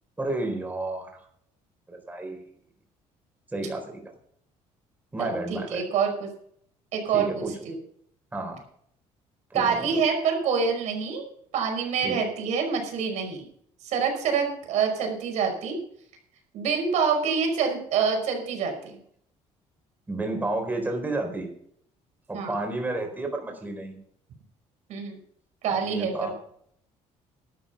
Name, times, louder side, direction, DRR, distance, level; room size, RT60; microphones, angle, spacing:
voice 1, 0.2-1.1 1.9-2.4 3.5-4.0 5.1-5.8 7.1-7.5 8.3-8.6 9.5-10.0 12.0-12.2 20.1-21.5 22.3-24.0 25.7-26.3, right 2 dB, 15° right, 3 dB, 4.2 m, -31 dB
voice 2, 5.2-6.3 6.9-7.8 9.5-11.2 11.5-13.5 13.8-15.8 16.5-18.9 22.3-22.5 24.9-25.2 25.6-26.1, right 6 dB, 70° right, 4 dB, 5.3 m, -26 dB
12.0 x 11.0 x 5.9 m, 0.65 s
cardioid pair, 115°, 12 cm